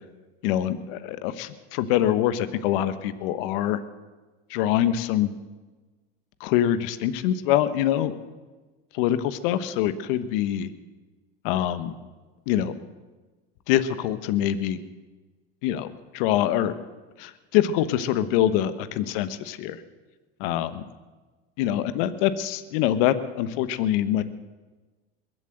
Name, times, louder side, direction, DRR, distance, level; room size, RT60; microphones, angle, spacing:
voice 1, 0.4-3.8 4.5-5.3 6.4-8.1 8.9-10.7 11.4-11.9 12.5-12.7 13.7-14.8 15.6-15.9 16.1-16.7 17.2-19.8 20.4-20.9 21.6-24.2, left 11 dB, 65° left, 13 dB, 1.2 m, -24 dB
21.5 x 7.8 x 7.8 m, 1.3 s
hypercardioid pair, 100°, 30 cm